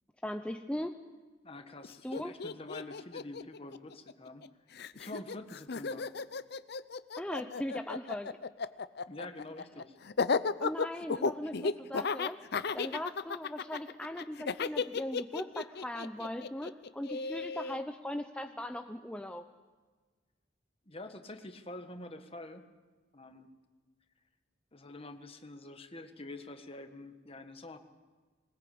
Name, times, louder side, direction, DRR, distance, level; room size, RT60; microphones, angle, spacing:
voice 1, 0.2-1.0 2.0-2.3 7.2-8.4 10.6-19.4, left 1 dB, 5° left, 6 dB, 0.6 m, -39 dB
voice 2, 1.4-4.5 4.9-6.1 9.1-10.0 20.8-22.7 23.1-23.5 24.7-27.8, left 2 dB, 30° left, 7 dB, 1.6 m, -46 dB
Laughter, 1.8-1.9 2.1-4.5 4.8-17.8, left 4 dB, 60° left, 0.7 m, -34 dB
20.5 x 20.0 x 8.6 m, 1.4 s
head